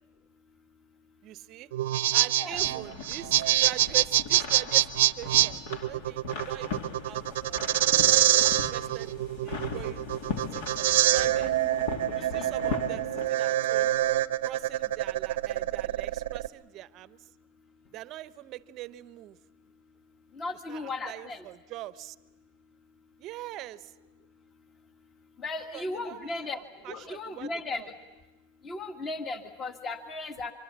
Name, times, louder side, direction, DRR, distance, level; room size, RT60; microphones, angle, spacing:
voice 1, 1.2-1.7 2.1-9.1 9.4-11.5 12.1-14.0 14.4-17.2 17.9-19.4 20.7-22.2 23.2-23.9 25.7-27.9, right 16 dB, 40° right, 15 dB, 0.8 m, -42 dB
sound 1, 1.7-16.5, right 14 dB, 75° right, 0.8 m, -25 dB
sound 2, 2.5-13.3, left 4 dB, 60° left, 2.6 m, -39 dB
voice 2, 12.2-12.5 20.4-21.4 25.4-26.6 26.9-27.8 28.6-30.5, left 3 dB, 25° left, 6 dB, 1.7 m, -36 dB
25.0 x 25.0 x 7.5 m, 1.1 s
supercardioid pair, 135°, 0 cm